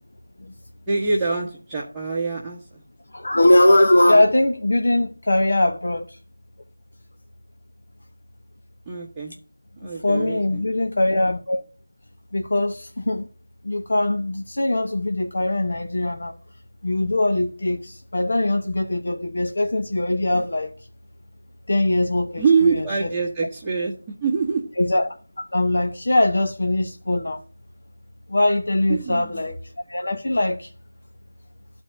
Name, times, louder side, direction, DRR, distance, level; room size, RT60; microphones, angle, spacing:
voice 1, 0.9-2.8 8.9-9.4 9.8-10.6 22.4-23.9 24.2-24.6 28.9-29.4, right 5 dB, 10° right, 1.2 m, -24 dB
voice 2, 3.1-6.2 9.8-11.6 12.3-13.3 13.6-16.3 16.8-20.7 21.7-22.4 22.7-23.1 24.8-25.1 25.5-27.4 28.3-29.6 29.9-30.7, left 1 dB, 60° left, 1.1 m, -21 dB
12.0 x 4.6 x 7.5 m
figure-of-eight pair, 170°, 0 cm